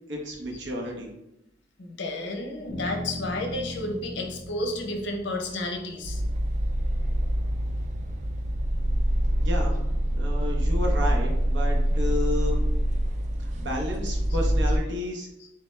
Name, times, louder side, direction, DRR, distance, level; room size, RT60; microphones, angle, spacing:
voice 1, 0.1-1.1 9.4-9.8 10.1-12.6 13.4-15.3, left 1 dB, 65° right, 0 dB, 0.8 m, -32 dB
voice 2, 1.8-6.2 14.3-14.4 15.4-15.5, left 2 dB, 65° left, 2 dB, 0.7 m, -32 dB
sound 1, 2.7-6.6, left 1 dB, 5° right, 0.8 m, -39 dB
sound 2, 6.0-14.8, right 1 dB, 40° right, 0.4 m, -25 dB
3.3 x 3.3 x 3.1 m, 0.88 s
head